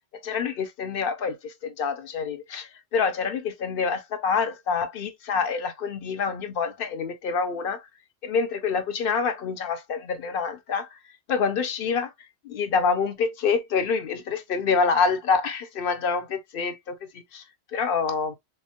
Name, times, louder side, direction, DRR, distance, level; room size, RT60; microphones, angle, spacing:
voice 1, 0.1-7.9 8.2-11.0 11.3-18.3, left 5 dB, 60° left, 0.7 m, -27 dB
3.6 x 2.1 x 2.7 m
omnidirectional pair, 1.1 m